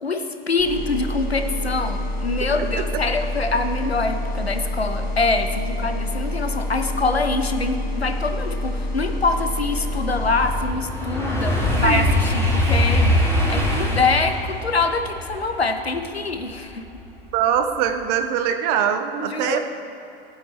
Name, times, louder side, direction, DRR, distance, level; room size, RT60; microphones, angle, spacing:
voice 1, 0.0-16.8 19.2-19.6, left 3 dB, 90° left, 7 dB, 0.9 m, -24 dB
sound 1, 0.6-10.6, left 1 dB, 25° left, 2.9 m, -27 dB
sound 2, 8.5-17.2 17.6-18.0, left 1 dB, 10° left, 2.8 m, -23 dB
voice 2, 17.3-19.6, right 8 dB, 40° right, 7 dB, 1.1 m, -22 dB
19.0 x 8.7 x 3.3 m, 2.8 s
figure-of-eight pair, 90°, 30 cm